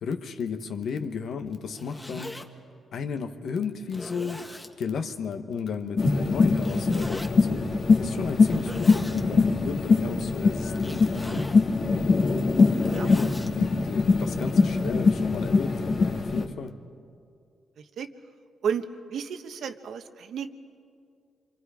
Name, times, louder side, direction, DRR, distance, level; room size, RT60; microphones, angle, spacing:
voice 1, 0.0-2.4 2.9-4.4 4.8-7.6 8.0-11.5 13.0-16.7, left 6 dB, 70° left, 8 dB, 1.3 m, -34 dB
Zipper (clothing), 1.5-2.5 3.2-3.3 3.9-4.7 6.6-7.3 8.3-9.2 10.7-11.6 12.4-13.5, left 1 dB, 15° left, 1.7 m, -40 dB
sound 1, 6.0-16.4, left 4 dB, 50° left, 1.7 m, -23 dB
voice 2, 17.8-18.1 18.6-20.5, right 7 dB, 70° right, 8 dB, 1.1 m, -32 dB
26.5 x 25.0 x 5.1 m, 2.3 s
cardioid pair, 90°, 0 cm